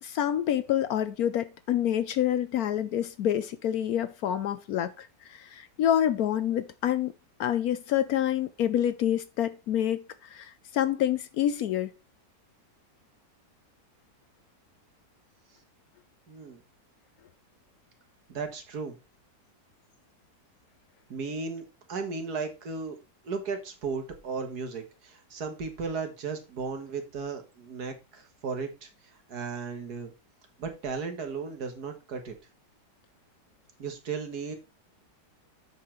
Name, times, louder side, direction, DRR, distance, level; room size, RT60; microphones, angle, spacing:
voice 1, 0.0-7.1 7.4-10.0 10.3-11.9, left 10 dB, 70° left, 1.0 m, -27 dB
voice 2, 16.3-16.6 18.3-19.0 21.1-23.0 23.2-30.1 30.6-32.3 33.8-34.6, right 5 dB, 65° right, 1.9 m, -35 dB
7.6 x 5.5 x 4.4 m
omnidirectional pair, 1.8 m